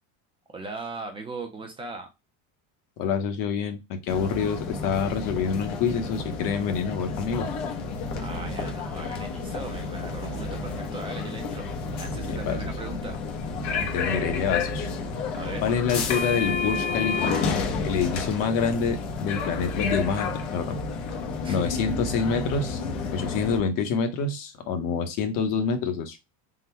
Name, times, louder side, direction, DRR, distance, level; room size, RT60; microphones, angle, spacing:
voice 1, 0.5-2.1 8.1-13.2 15.3-15.6 21.4-21.8, right 3 dB, 15° right, 3 dB, 0.5 m, -38 dB
voice 2, 3.0-7.5 12.3-12.7 13.7-14.9 15.6-17.3 17.8-20.8 21.5-22.8 23.1-26.2, left 6 dB, 55° left, 7 dB, 1.0 m, -27 dB
sound 1, 4.1-23.6, left 4 dB, 75° left, 1.0 m, -30 dB
3.8 x 2.2 x 4.3 m, 0.23 s
cardioid pair, 170°, 39 cm